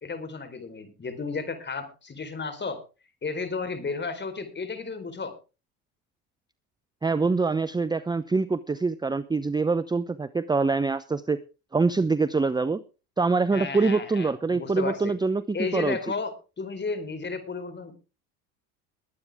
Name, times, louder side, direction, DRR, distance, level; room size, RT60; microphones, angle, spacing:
voice 1, 0.0-2.8 3.2-5.4 13.5-15.1 15.5-18.0, left 4 dB, 25° left, 9 dB, 4.2 m, -33 dB
voice 2, 7.0-11.4 11.7-12.8 13.2-16.0, right 4 dB, 10° right, 15 dB, 0.7 m, -25 dB
22.0 x 8.8 x 3.6 m, 0.32 s
supercardioid pair, 90°, 42 cm